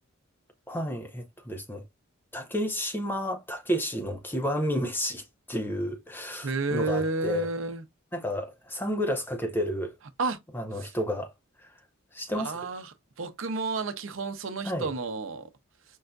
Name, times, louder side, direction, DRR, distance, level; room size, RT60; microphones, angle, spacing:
voice 1, 0.7-1.8 2.3-7.5 8.1-9.9 10.5-11.3 11.6-11.7 12.1-12.5 14.6-14.9, equal, 10° left, 0.6 m, -31 dB
voice 2, 6.4-7.8 10.2-10.4 10.8-10.9 12.3-15.5, right 3 dB, 70° right, 0.7 m, -31 dB
5.4 x 2.5 x 2.2 m
head